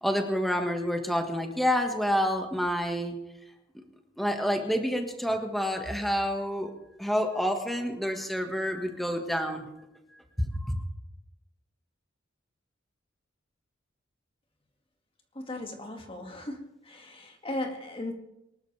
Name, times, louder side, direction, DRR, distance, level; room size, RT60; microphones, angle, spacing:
voice 1, 0.0-3.2 4.2-6.7 7.0-9.7 10.4-10.8, equal, ahead, 4 dB, 1.7 m, -28 dB
voice 2, 15.3-18.1, left 1 dB, 30° left, 3 dB, 2.2 m, -37 dB
24.0 x 13.0 x 3.4 m, 0.87 s
head